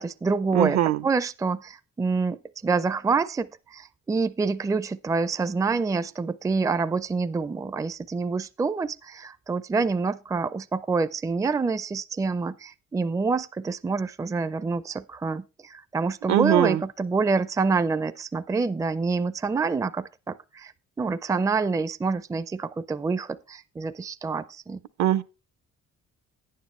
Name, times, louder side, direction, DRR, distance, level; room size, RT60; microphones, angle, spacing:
voice 1, 0.0-20.7 21.0-24.8, right 4 dB, 10° right, 0.4 m, -27 dB
voice 2, 0.5-1.0 16.3-16.8 25.0-25.2, right 11 dB, 65° right, 0.7 m, -21 dB
10.5 x 9.4 x 3.1 m
cardioid pair, 90°, 30 cm